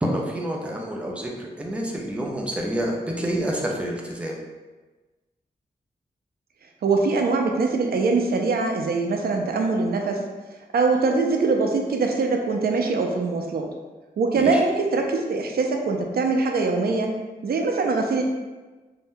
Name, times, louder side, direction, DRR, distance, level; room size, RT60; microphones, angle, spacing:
voice 1, 0.0-4.4 14.3-14.6, right 1 dB, 10° right, -1 dB, 0.3 m, -28 dB
voice 2, 6.8-10.2 10.7-13.7 14.2-17.1 17.4-18.2, right 3 dB, 75° right, 3 dB, 0.4 m, -23 dB
2.6 x 2.2 x 3.5 m, 1.3 s
wide cardioid pair, 170°, 16 cm